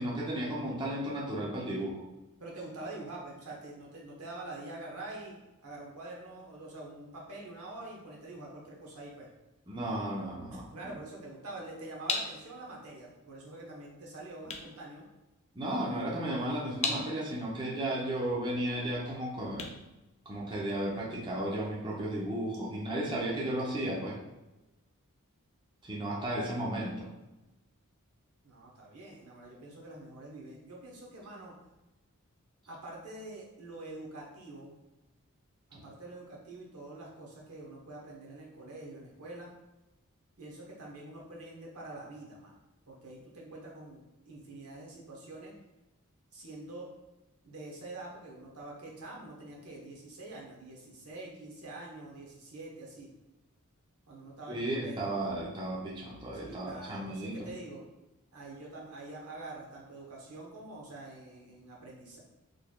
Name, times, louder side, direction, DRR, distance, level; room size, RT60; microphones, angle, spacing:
voice 1, 0.0-2.0 9.7-10.9 15.5-19.7 20.3-24.2 25.8-27.1 35.7-35.8 54.5-57.5, right 1 dB, 20° right, -5 dB, 0.6 m, -34 dB
voice 2, 2.4-5.3 5.6-9.3 10.7-15.1 28.4-31.5 32.7-34.8 35.7-39.5 40.4-42.5 42.9-45.5 46.3-46.9 47.4-53.1 54.1-55.1 56.3-57.8 58.3-62.2, right 2 dB, 80° right, -2 dB, 1.0 m, -45 dB
sound 1, 12.0-20.8, left 4 dB, 30° left, 0.4 m, -40 dB
3.9 x 3.3 x 2.2 m, 1.0 s
head